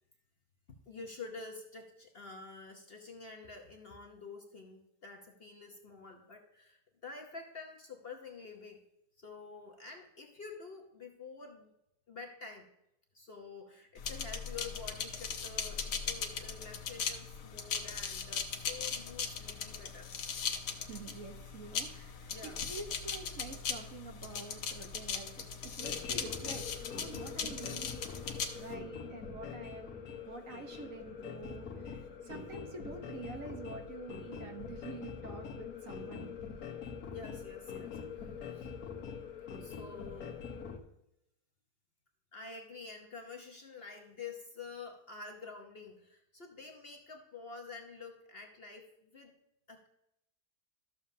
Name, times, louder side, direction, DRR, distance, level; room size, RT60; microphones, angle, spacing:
voice 1, 0.9-8.8 9.2-11.7 12.1-12.7 13.1-20.1 22.3-22.7 37.1-38.7 39.6-40.4 42.3-49.3 49.7-49.9, left 4 dB, 40° left, 2 dB, 1.0 m, -48 dB
sound 1, 14.0-28.7, left 6 dB, 80° left, 1.5 m, -39 dB
voice 2, 20.8-36.5, right 3 dB, 55° right, 4 dB, 1.4 m, -47 dB
sound 2, 25.8-40.8, left 6 dB, 65° left, 1.5 m, -44 dB
13.0 x 7.2 x 2.7 m, 0.82 s
omnidirectional pair, 1.8 m